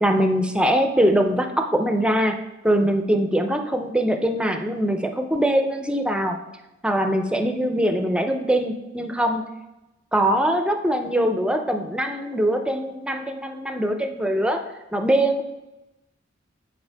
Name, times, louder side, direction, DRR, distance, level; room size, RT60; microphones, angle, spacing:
voice 1, 0.0-2.4 2.6-6.4 6.8-9.4 10.1-14.6 14.9-15.4, right 1 dB, 5° right, 5 dB, 0.5 m, -22 dB
8.1 x 4.3 x 3.4 m, 0.98 s
head